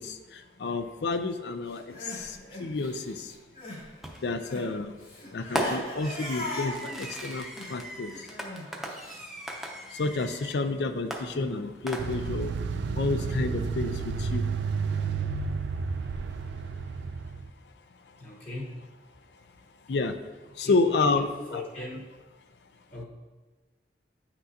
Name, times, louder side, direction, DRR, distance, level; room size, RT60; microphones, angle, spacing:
voice 1, 0.0-3.3 4.2-5.0 5.3-7.4 7.7-8.1 9.9-12.5 12.9-14.4 19.9-20.1 20.6-21.3 21.5-21.6, left 3 dB, 70° left, 9 dB, 0.4 m, -30 dB
Crying sobbing, 1.7-3.9 4.1-9.2, left 1 dB, 50° left, 2.4 m, -40 dB
Fireworks, 4.0-4.4 5.6-10.6 11.1-12.4, equal, ahead, 0.6 m, -37 dB
sound 1, 12.0-17.5, right 5 dB, 80° right, 0.4 m, -31 dB
voice 2, 18.2-18.8 20.6-21.2 21.5-22.1 22.9-23.0, left 2 dB, 35° left, -4 dB, 1.2 m, -38 dB
9.0 x 6.0 x 2.8 m, 1.3 s
head